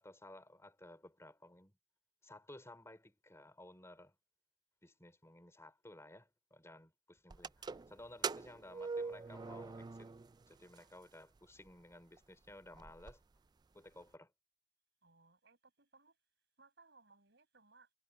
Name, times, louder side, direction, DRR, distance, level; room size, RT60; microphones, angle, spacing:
voice 1, 0.0-1.7 2.2-4.2 4.8-10.1 10.5-13.2 13.7-14.3, left 1 dB, 15° left, 3.5 m, -56 dB
sound 1, 7.3-10.4 10.8-10.9 11.7-11.8 12.2-12.3 12.5-13.1, right 5 dB, 20° right, 0.3 m, -42 dB
voice 2, 15.0-16.2 16.6-17.9, right 3 dB, 65° right, 7.3 m, -65 dB
head